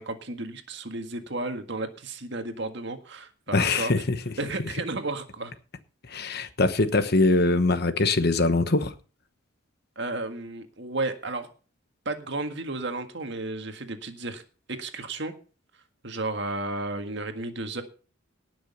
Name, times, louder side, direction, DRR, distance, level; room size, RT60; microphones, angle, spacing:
voice 1, 0.0-3.9 4.4-5.5 10.0-11.5 12.1-14.4 14.7-15.3 16.0-17.8, right 2 dB, 55° right, 1.8 m, -33 dB
voice 2, 3.5-4.3 4.6-4.7 6.1-8.9, left 2 dB, 50° left, 1.1 m, -23 dB
18.5 x 6.4 x 5.4 m
head